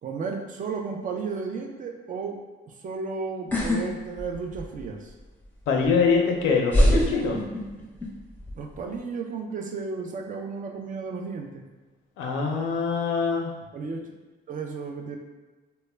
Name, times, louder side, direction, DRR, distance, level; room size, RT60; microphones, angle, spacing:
voice 1, 0.0-2.4 2.7-5.1 8.5-11.6 13.7-14.0 14.5-15.2, right 4 dB, 40° right, 2 dB, 0.4 m, -33 dB
sound 1, 3.5-3.8 4.2-4.8 5.8-5.9 6.7-8.1 8.4-8.8, equal, 10° left, 0.6 m, -22 dB
voice 2, 5.7-7.4 12.2-13.5, left 5 dB, 90° left, 1 dB, 0.5 m, -24 dB
2.1 x 2.1 x 3.2 m, 1.2 s
cardioid pair, 90°, 20 cm